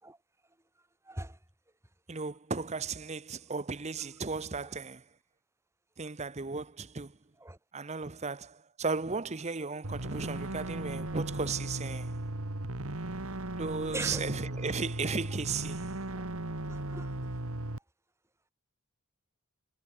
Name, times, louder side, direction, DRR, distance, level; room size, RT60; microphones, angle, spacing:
voice 1, 1.0-1.4 3.5-3.6 4.6-4.7 7.4-7.6 13.9-14.2 15.1-15.2 16.1-16.3 16.7-17.2, right 2 dB, 10° right, 2.9 m, -41 dB
voice 2, 2.1-5.0 6.0-7.2 7.7-12.1 13.6-15.8, right 4 dB, 30° right, 0.8 m, -35 dB
sound 1, 9.8-17.8, right 1 dB, 75° right, 2.4 m, -37 dB
head